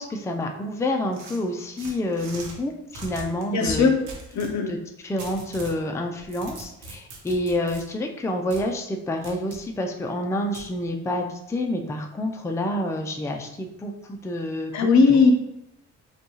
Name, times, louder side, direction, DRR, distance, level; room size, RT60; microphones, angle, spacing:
voice 1, 0.0-3.9 4.7-4.8 5.0-14.9, left 1 dB, 10° left, 3 dB, 0.4 m, -28 dB
sound 1, 1.1-2.5 2.9-4.5 5.2-5.8 6.2-7.8 8.5-8.6 9.2-9.6 10.5-10.7, right 2 dB, 80° right, 1.1 m, -40 dB
voice 2, 3.5-4.0 4.3-4.7 14.7-15.3, left 4 dB, 65° left, 5 dB, 0.7 m, -18 dB
5.1 x 2.3 x 3.1 m, 0.81 s
cardioid pair, 90°, 30 cm